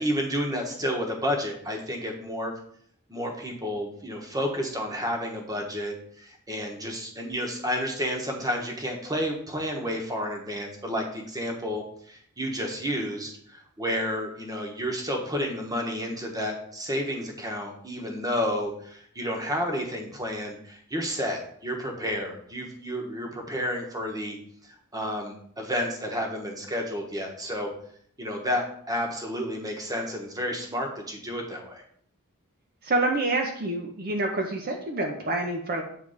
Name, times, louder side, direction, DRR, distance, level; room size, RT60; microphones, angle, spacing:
voice 1, 0.0-2.5 3.1-24.4 24.9-27.7 28.2-31.8, equal, 15° right, 2 dB, 1.1 m, -31 dB
voice 2, 32.8-35.8, right 2 dB, 45° right, 1 dB, 0.7 m, -27 dB
7.9 x 3.3 x 4.9 m, 0.63 s
head